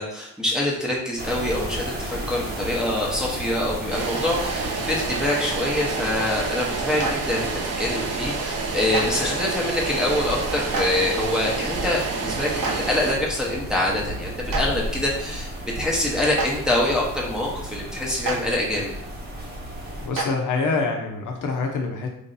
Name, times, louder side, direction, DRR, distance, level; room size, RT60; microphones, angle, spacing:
voice 1, 0.0-7.5 7.8-15.5 15.8-18.9, left 1 dB, ahead, -4 dB, 0.7 m, -25 dB
sound 1, 1.2-20.1, right 1 dB, 25° right, 0.9 m, -34 dB
sound 2, 3.9-13.1, right 4 dB, 45° right, 0.6 m, -29 dB
Clapping, 7.0-7.1 8.9-9.0 10.7-10.8 12.6-12.7 14.5-14.6 16.3-16.5 18.2-18.3 20.1-20.2, right 4 dB, 70° right, 0.9 m, -26 dB
voice 2, 20.0-22.1, left 4 dB, 60° left, 2 dB, 0.7 m, -25 dB
3.2 x 2.6 x 3.9 m, 0.75 s
cardioid pair, 120°, 35 cm